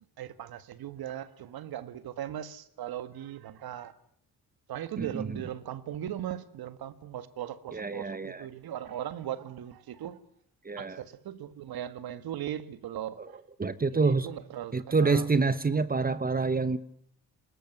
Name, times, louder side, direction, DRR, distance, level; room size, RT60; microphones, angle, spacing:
voice 1, 0.0-3.9 4.7-10.2 10.8-13.4 13.9-15.3, right 11 dB, 75° right, 1.7 m, -38 dB
voice 2, 5.0-5.4 7.7-8.5 10.6-11.0 13.2-13.3 13.6-14.3 14.7-16.8, right 4 dB, 25° right, 1.1 m, -27 dB
21.5 x 18.5 x 9.4 m
cardioid pair, 100°, 37 cm